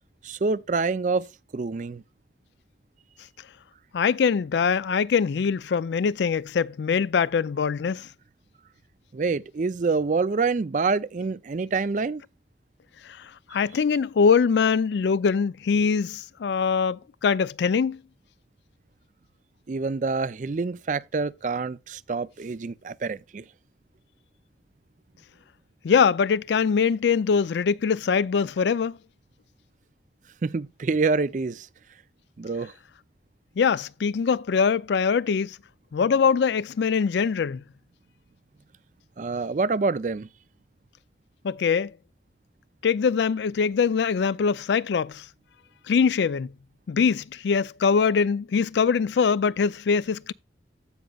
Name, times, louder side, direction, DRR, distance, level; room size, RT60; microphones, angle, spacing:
voice 1, 0.2-2.0 9.1-12.2 19.7-23.4 30.4-31.7 32.4-32.7 39.2-40.3, right 4 dB, 40° right, 0.4 m, -26 dB
voice 2, 3.9-8.1 13.5-18.0 25.8-29.0 33.6-35.6 35.9-37.6 41.4-41.9 42.8-45.2 45.9-46.5 46.9-50.3, left 6 dB, 70° left, 0.4 m, -23 dB
15.5 x 5.2 x 2.3 m
head